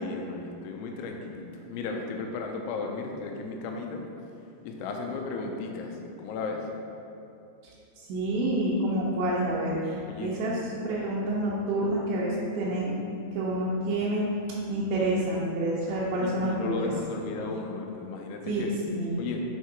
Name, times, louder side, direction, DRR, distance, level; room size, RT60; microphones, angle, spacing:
voice 1, 0.0-4.0 4.6-6.7 10.1-10.4 16.2-18.7 19.2-19.4, left 3 dB, 85° left, 2 dB, 3.1 m, -35 dB
voice 2, 8.1-10.5 10.8-12.9 13.3-14.3 14.7-16.9 18.5-19.2, right 1 dB, 75° right, -7 dB, 2.9 m, -28 dB
7.5 x 4.6 x 4.6 m, 2.7 s
omnidirectional pair, 5.4 m